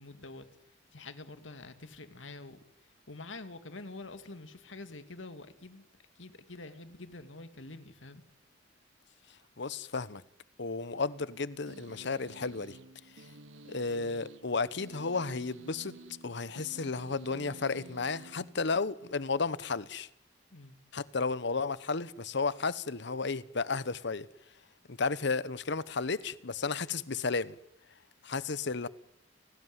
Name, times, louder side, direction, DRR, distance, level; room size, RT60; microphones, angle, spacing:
voice 1, 0.0-5.9 6.1-8.2 20.5-20.8, left 2 dB, 90° left, 2.3 m, -47 dB
voice 2, 9.6-10.2 10.6-12.8 13.6-16.0 16.2-20.1 20.9-24.3 24.9-27.5 28.2-28.9, left 4 dB, 65° left, 1.0 m, -33 dB
sound 1, 11.7-19.1, right 2 dB, 80° right, 1.4 m, -52 dB
30.0 x 18.5 x 9.6 m
head